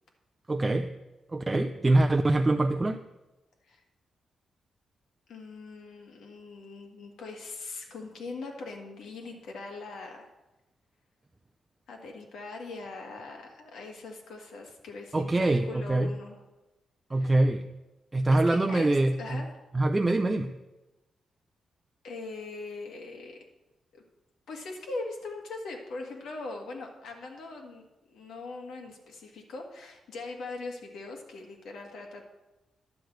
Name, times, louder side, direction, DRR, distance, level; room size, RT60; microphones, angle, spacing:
voice 1, 0.5-0.8 1.3-3.0 15.1-16.1 17.1-17.7 18.1-19.4 19.7-20.5, right 2 dB, 20° right, 5 dB, 0.4 m, -24 dB
voice 2, 5.3-10.3 11.9-16.4 17.2-17.4 18.3-19.5 22.0-23.4 23.9-24.0 24.5-27.8 28.1-32.2, left 3 dB, 90° left, 1 dB, 1.7 m, -41 dB
10.5 x 4.7 x 7.9 m, 1.0 s
cardioid pair, 120°, 0 cm